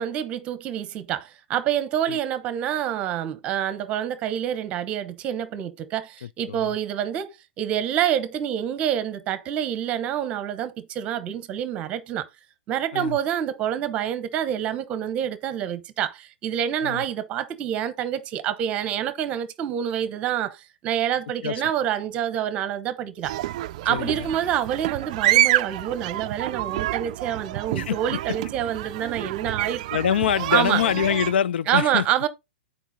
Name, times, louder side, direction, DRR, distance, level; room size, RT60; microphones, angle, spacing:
voice 1, 0.0-12.3 12.7-23.4 23.8-29.8 30.5-30.8 31.7-32.3, right 10 dB, 20° right, 0.9 m, -27 dB
sound 1, 23.2-31.3, right 15 dB, 40° right, 0.3 m, -27 dB
voice 2, 23.9-24.3 27.7-28.0 29.9-32.0, left 9 dB, 70° left, 0.4 m, -24 dB
9.1 x 4.7 x 4.0 m
hypercardioid pair, 165°, 6 cm